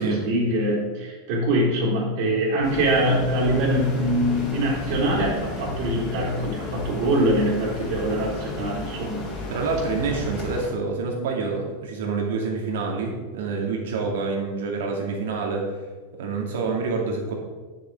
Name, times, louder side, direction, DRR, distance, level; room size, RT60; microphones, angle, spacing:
voice 1, 0.0-9.2, right 1 dB, 60° right, -7 dB, 3.3 m, -23 dB
sound 1, 2.6-10.7, left 2 dB, 25° left, 3.2 m, -33 dB
voice 2, 9.5-15.7 16.2-17.3, right 4 dB, 80° right, 0 dB, 2.5 m, -27 dB
9.5 x 6.8 x 4.7 m, 1.3 s
supercardioid pair, 155°, 0 cm